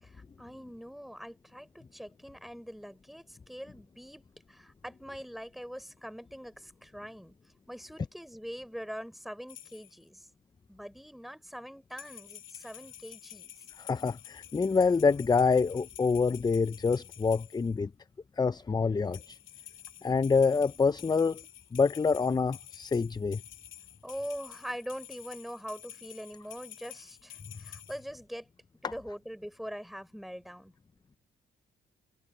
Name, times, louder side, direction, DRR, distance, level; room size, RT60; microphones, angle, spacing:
voice 1, 0.0-7.3 7.7-10.3 10.7-13.5 18.4-18.5 24.0-28.5 28.8-30.7, equal, ahead, 5.5 m, -43 dB
sound 1, 9.5-10.0 11.9-17.7 19.1-28.1, left 11 dB, 75° left, 2.2 m, -50 dB
voice 2, 13.8-17.9 18.4-19.4 20.0-21.4 21.7-23.4, left 4 dB, 20° left, 0.5 m, -26 dB
cardioid pair, 90°, 20 cm